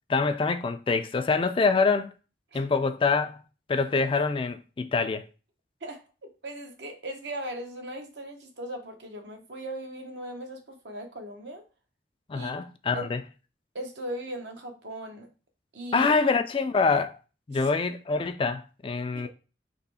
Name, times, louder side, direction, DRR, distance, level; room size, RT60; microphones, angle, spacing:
voice 1, 0.1-2.1 2.5-3.4 3.7-5.2 12.3-13.2 15.9-17.2 17.5-19.3, left 4 dB, 30° left, 0.3 m, -25 dB
voice 2, 5.8-11.6 12.3-12.5 12.9-13.1 13.7-15.3 15.7-16.1 17.5-17.6 19.1-19.3, right 1 dB, 70° right, 1.0 m, -38 dB
4.2 x 3.0 x 4.1 m
head